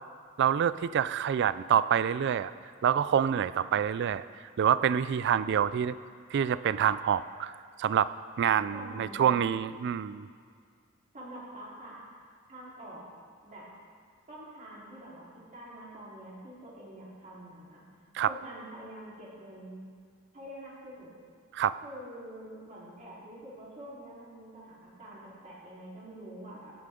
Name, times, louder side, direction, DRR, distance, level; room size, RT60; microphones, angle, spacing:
voice 1, 0.4-2.5 2.8-4.2 4.6-5.9 6.3-7.5 7.8-8.1 8.4-10.3 18.1-18.3 21.5-21.8, right 8 dB, 55° right, 16 dB, 0.3 m, -26 dB
voice 2, 8.7-9.6 11.1-12.0 12.5-13.1 13.4-13.6 14.3-15.2 15.5-17.8 18.2-19.9 20.3-21.1 21.8-26.7, right 1 dB, 40° right, -7 dB, 3.9 m, -46 dB
17.5 x 9.8 x 3.8 m, 2.1 s
head